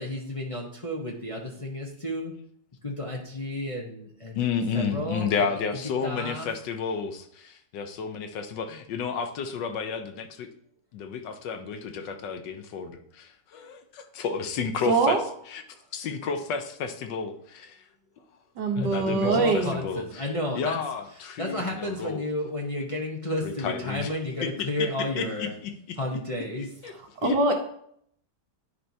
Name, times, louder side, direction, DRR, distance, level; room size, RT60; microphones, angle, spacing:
voice 1, 0.0-2.3 2.8-4.5 4.7-5.5 6.0-6.5 18.7-20.8 21.4-25.5 26.0-26.7, left 1 dB, 30° left, -2 dB, 0.6 m, -32 dB
voice 2, 4.3-10.5 10.9-15.2 15.5-15.6 15.9-17.8 18.8-20.3 20.5-22.2 23.4-24.1 25.2-26.0 26.6-26.9 27.2-27.4, left 6 dB, 85° left, 6 dB, 1.4 m, -31 dB
voice 3, 14.9-15.2 18.6-19.7 27.2-27.5, right 4 dB, 75° right, 3 dB, 1.6 m, -23 dB
9.9 x 4.4 x 2.7 m, 0.67 s
omnidirectional pair, 1.9 m